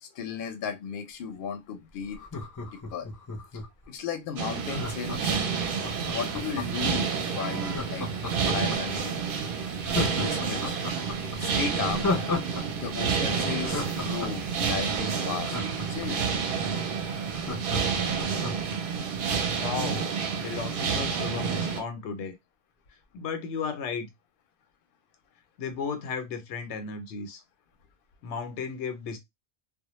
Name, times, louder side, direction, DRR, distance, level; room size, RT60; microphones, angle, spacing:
voice 1, 0.0-2.2 2.9-3.1 3.9-5.3 5.9-8.1 8.5-9.1 10.1-10.8 11.4-12.1 12.7-15.6 15.9-16.2, left 7 dB, 60° left, 0.7 m, -35 dB
Laughter, 2.1-3.8 4.7-6.9 7.6-9.0 9.4-9.5 9.8-12.6 12.9-13.0 13.4-16.3 16.7-16.8 17.0-18.8 19.1-19.2, left 3 dB, 30° left, 0.3 m, -33 dB
sound 1, 4.4-21.8, right 6 dB, 60° right, 0.6 m, -29 dB
voice 2, 19.5-20.1 20.4-22.4 23.1-24.1 25.6-27.4 28.2-29.2, left 5 dB, 90° left, 0.9 m, -34 dB
2.1 x 2.0 x 2.9 m
omnidirectional pair, 1.1 m